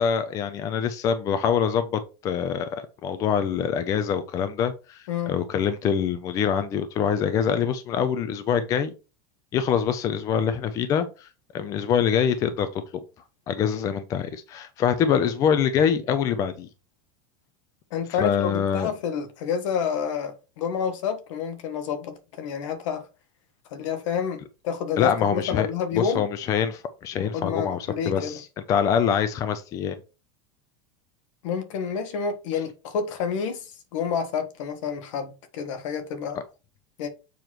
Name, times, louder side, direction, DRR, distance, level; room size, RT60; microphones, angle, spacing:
voice 1, 0.0-2.7 3.0-8.9 9.5-11.3 11.5-12.8 13.5-16.7 18.2-18.9 25.0-25.7 25.9-30.0, left 7 dB, 20° left, 0.4 m, -24 dB
voice 2, 17.9-23.1 23.7-26.2 27.2-28.4 31.4-36.4 37.0-37.1, left 6 dB, 65° left, 1.3 m, -29 dB
7.0 x 3.0 x 6.0 m
supercardioid pair, 180°, 17 cm